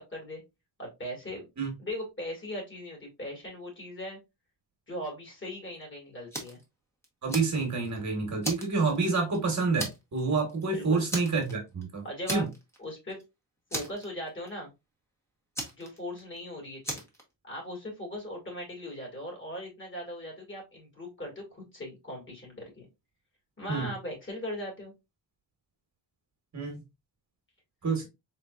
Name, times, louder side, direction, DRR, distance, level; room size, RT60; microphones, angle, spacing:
voice 1, 0.1-0.4 0.8-1.5 1.8-4.2 4.9-6.6 10.7-11.0 12.0-12.5 12.8-13.2 13.7-14.7 15.8-17.0 17.4-22.9 23.6-24.9, left 1 dB, 30° left, 2.3 m, -39 dB
Fire, 6.3-6.6 7.0-8.0 8.4-9.4 9.8-10.2 10.5-10.6 11.1-11.8 12.3-12.8 13.1-13.2 13.7-14.5 15.5-16.4 16.8-17.2, right 1 dB, 5° left, 1.3 m, -36 dB
voice 2, 7.2-12.0 12.3-12.5 23.7-23.9 26.5-26.8 27.8-28.0, right 4 dB, 40° right, 1.5 m, -28 dB
4.1 x 3.7 x 2.5 m
wide cardioid pair, 135°, 41 cm